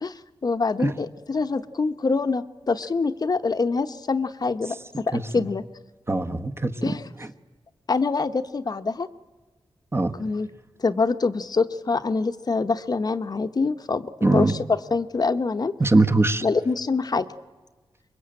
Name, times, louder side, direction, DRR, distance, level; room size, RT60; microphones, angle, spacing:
voice 1, 0.4-5.6 6.8-7.1 7.9-9.1 10.2-10.5 10.8-15.7 16.4-17.3, left 4 dB, 45° left, 10 dB, 1.0 m, -25 dB
voice 2, 6.1-7.3 9.9-10.1 14.2-14.5 15.8-16.4, right 2 dB, 25° right, 8 dB, 1.3 m, -22 dB
25.0 x 22.5 x 8.9 m, 1.3 s
wide cardioid pair, 95°, 9 cm